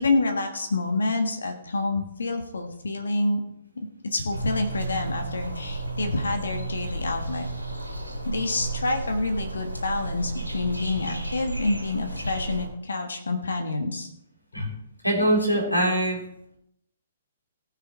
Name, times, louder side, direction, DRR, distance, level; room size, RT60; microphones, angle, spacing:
voice 1, 0.0-3.4 4.1-7.5 8.2-14.1, left 2 dB, 65° left, 5 dB, 1.4 m, -27 dB
sound 1, 4.3-12.7, right 2 dB, 85° right, 3.2 m, -33 dB
voice 2, 15.0-16.2, right 1 dB, 90° left, 0 dB, 3.8 m, -23 dB
18.0 x 6.6 x 4.5 m, 0.78 s
figure-of-eight pair, 120°, 0 cm